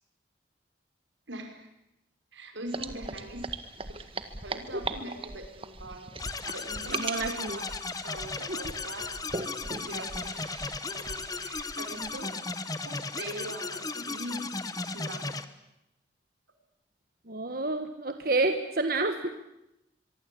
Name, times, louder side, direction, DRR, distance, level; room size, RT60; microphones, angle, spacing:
voice 1, 1.3-1.7 2.3-3.5 3.9-4.0 4.4-7.7 8.0-9.1 9.8-10.3 10.9-12.4 12.8-14.5 14.8-15.4, right 1 dB, 90° right, 5 dB, 5.3 m, -42 dB
sound 1, 2.7-12.2, right 3 dB, 30° right, 1.6 m, -40 dB
sound 2, 6.2-15.4, left 3 dB, 20° left, 1.1 m, -36 dB
voice 2, 6.9-7.6 8.5-8.6 17.3-19.3, right 2 dB, 50° right, 7 dB, 1.4 m, -29 dB
24.0 x 24.0 x 8.6 m, 0.87 s
head